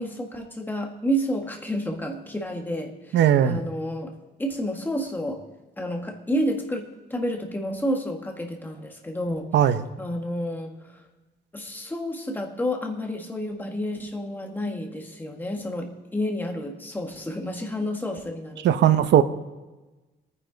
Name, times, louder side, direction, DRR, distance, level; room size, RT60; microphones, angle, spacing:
voice 1, 0.0-4.1 4.4-5.4 5.8-9.5 10.0-10.7 11.5-19.0, equal, 10° left, 2 dB, 1.5 m, -30 dB
voice 2, 3.1-3.6 9.5-9.8 18.6-19.2, right 10 dB, 80° right, 12 dB, 0.8 m, -18 dB
22.0 x 9.8 x 3.9 m, 1.2 s
cardioid pair, 160°, 18 cm